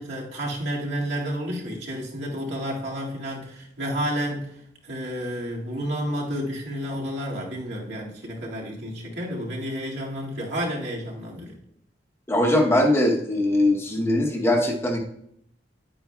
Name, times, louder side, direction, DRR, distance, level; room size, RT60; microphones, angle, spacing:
voice 1, 0.0-4.5 4.8-11.5, equal, 75° right, -3 dB, 2.0 m, -30 dB
voice 2, 12.3-15.0, left 1 dB, 15° left, 1 dB, 0.9 m, -21 dB
10.0 x 9.0 x 2.3 m, 0.74 s
head